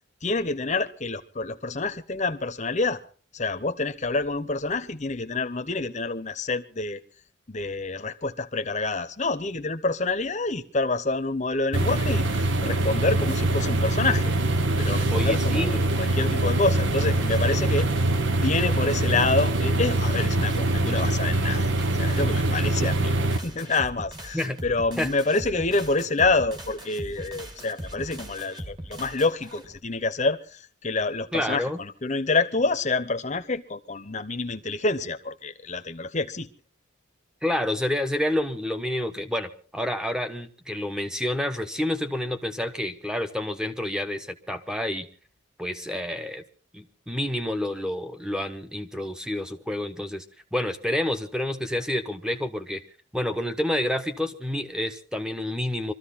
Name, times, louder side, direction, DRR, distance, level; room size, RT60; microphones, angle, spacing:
voice 1, 0.2-3.0 3.3-7.0 7.5-14.3 14.8-17.9 18.3-21.7 21.9-23.1 23.4-36.5, left 3 dB, 35° left, 1.0 m, -27 dB
sound 1, 11.7-23.4, right 2 dB, 60° right, 1.0 m, -24 dB
voice 2, 15.1-15.8 24.3-24.6 25.0-25.1 31.3-31.8 37.4-45.1 45.6-46.4 46.7-50.2 50.5-52.8 53.1-55.9, left 1 dB, 5° right, 1.1 m, -29 dB
sound 2, 17.0-29.8, right 1 dB, 20° right, 1.7 m, -40 dB
24.0 x 14.0 x 4.2 m
head